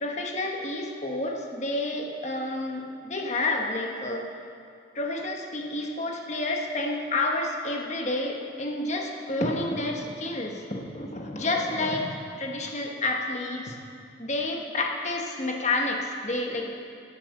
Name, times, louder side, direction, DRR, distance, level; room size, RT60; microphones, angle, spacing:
voice 1, 0.0-4.3 4.9-13.7 14.2-16.7, left 2 dB, 35° left, 1 dB, 1.2 m, -29 dB
16.0 x 8.5 x 6.6 m, 2.4 s
head